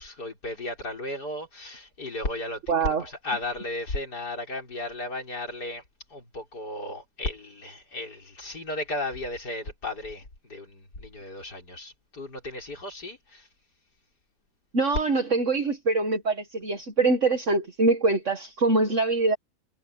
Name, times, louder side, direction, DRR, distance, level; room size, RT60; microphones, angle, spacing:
voice 1, 0.0-2.6 3.0-5.8 6.1-13.5, left 2 dB, 90° left, 6.0 m, -35 dB
voice 2, 2.7-3.0 14.7-19.4, right 3 dB, 50° right, 2.0 m, -24 dB
omnidirectional pair, 1.7 m